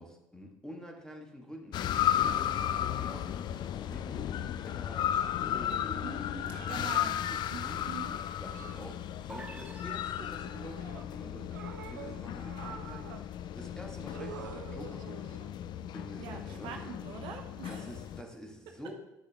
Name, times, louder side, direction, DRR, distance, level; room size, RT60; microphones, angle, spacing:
voice 1, 0.0-1.9 2.1-6.3 6.8-15.3 15.9-17.0 17.7-18.9, equal, 5° left, 1 dB, 1.8 m, -47 dB
sound 1, 1.7-18.2, left 10 dB, 50° left, 0.4 m, -35 dB
sound 2, 5.1-5.5 6.5-7.4 8.5-9.4 10.2-11.1 11.5-13.3 14.1-15.6 16.7-16.9, right 8 dB, 80° right, 0.5 m, -48 dB
voice 2, 6.0-7.2 7.5-8.2 16.2-17.9, right 5 dB, 60° right, 4 dB, 0.9 m, -44 dB
sound 3, 9.3-10.9, right 2 dB, 15° right, 0.7 m, -50 dB
8.6 x 6.3 x 3.6 m, 0.93 s
figure-of-eight pair, 55°, 10 cm